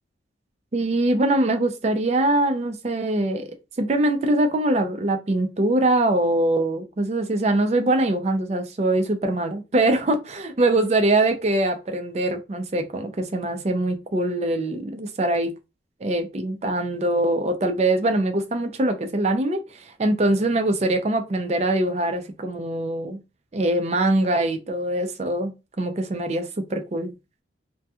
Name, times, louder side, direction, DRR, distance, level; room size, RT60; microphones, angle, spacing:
voice 1, 0.7-3.5 3.8-15.5 16.0-23.2 23.5-27.1, right 1 dB, 35° right, 0.4 m, -23 dB
2.7 x 2.2 x 2.3 m
head